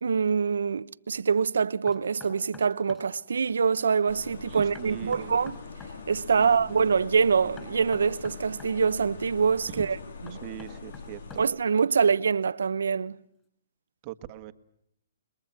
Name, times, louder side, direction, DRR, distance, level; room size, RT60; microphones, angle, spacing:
voice 1, 0.0-5.6 6.1-10.0 10.2-10.4 11.4-13.2, right 6 dB, 80° right, 0.9 m, -25 dB
Knock, 1.9-3.1 4.8-6.0 7.6-8.8 10.3-11.7, left 4 dB, 15° left, 6.5 m, -47 dB
sound 1, 4.1-11.5, left 4 dB, 70° left, 3.3 m, -42 dB
voice 2, 4.5-5.3 6.4-6.5 9.7-9.9 10.4-11.4 14.0-14.5, right 14 dB, 35° right, 1.5 m, -40 dB
29.5 x 21.5 x 6.0 m
hypercardioid pair, 150°, 0 cm